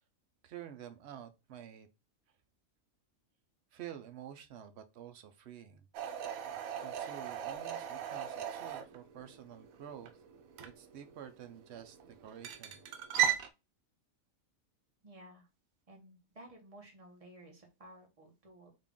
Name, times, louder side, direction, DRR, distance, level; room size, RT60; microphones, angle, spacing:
voice 1, 0.4-1.9 3.7-5.9 6.8-10.2 10.6-12.8, right 10 dB, 65° right, 0.8 m, -49 dB
sound 1, 5.9-13.5, right 10 dB, 90° right, 1.0 m, -38 dB
voice 2, 15.0-15.5 15.9-18.7, right 1 dB, 30° right, 1.0 m, -55 dB
3.7 x 2.4 x 3.6 m
omnidirectional pair, 1.4 m